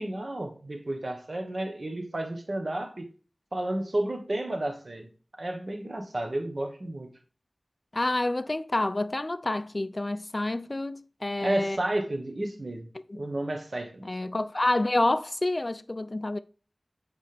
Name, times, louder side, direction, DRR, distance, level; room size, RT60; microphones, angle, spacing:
voice 1, 0.0-3.1 3.5-5.1 5.4-7.1 11.4-12.9 13.1-14.1, right 1 dB, 65° right, 1.3 m, -32 dB
voice 2, 7.9-11.8 13.1-13.2 14.0-16.4, left 2 dB, 45° left, 0.4 m, -28 dB
7.9 x 5.1 x 3.4 m
wide cardioid pair, 45°, 0 cm